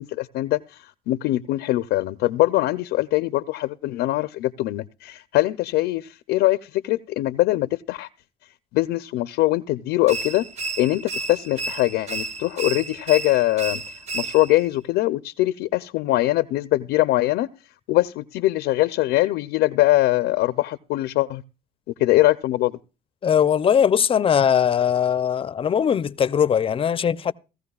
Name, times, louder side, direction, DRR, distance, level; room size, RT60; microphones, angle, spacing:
voice 1, 0.0-8.1 8.7-10.5 10.8-13.8 14.1-17.5 17.9-21.4 22.0-22.8, left 17 dB, 85° left, 0.5 m, -22 dB
sound 1, 10.1-14.7, right 3 dB, 40° right, 0.9 m, -32 dB
voice 2, 23.2-27.3, left 8 dB, 30° left, 0.5 m, -20 dB
17.0 x 14.5 x 2.3 m
cardioid pair, 110°, 17 cm